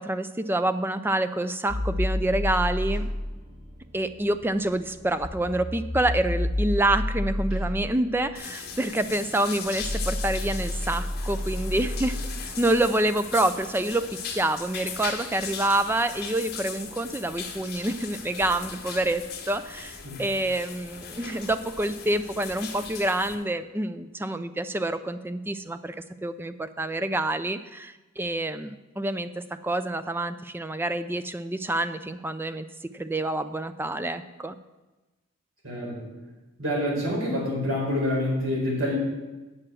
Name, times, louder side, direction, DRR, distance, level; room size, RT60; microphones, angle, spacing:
voice 1, 0.0-3.1 3.9-12.2 12.4-26.0 26.2-32.7 32.9-34.6, right 1 dB, 10° right, 11 dB, 0.3 m, -27 dB
sound 1, 1.7-12.9, left 1 dB, 30° right, 4.3 m, -31 dB
sound 2, 8.3-23.3, left 6 dB, 45° left, 1.6 m, -38 dB
voice 2, 35.6-36.0 36.6-38.9, left 1 dB, 65° right, -3 dB, 4.4 m, -27 dB
8.6 x 6.7 x 7.5 m, 1.1 s
head